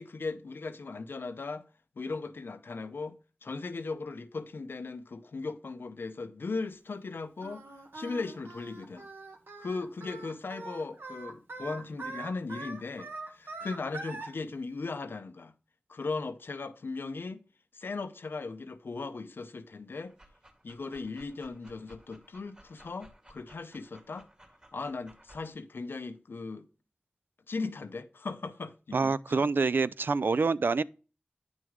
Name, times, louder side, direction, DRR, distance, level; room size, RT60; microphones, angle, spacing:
voice 1, 0.0-1.7 2.0-7.7 7.9-9.1 9.6-15.5 15.9-17.4 17.7-20.1 20.6-24.3 24.7-26.7 27.5-29.5, left 3 dB, 90° left, 0.6 m, -38 dB
Singing, 7.4-14.3, right 3 dB, 90° right, 1.4 m, -43 dB
Dog, 20.0-25.5, right 1 dB, 30° right, 2.1 m, -58 dB
voice 2, 28.9-30.8, right 4 dB, 70° right, 0.3 m, -26 dB
9.1 x 6.3 x 3.6 m
wide cardioid pair, 55°, 4 cm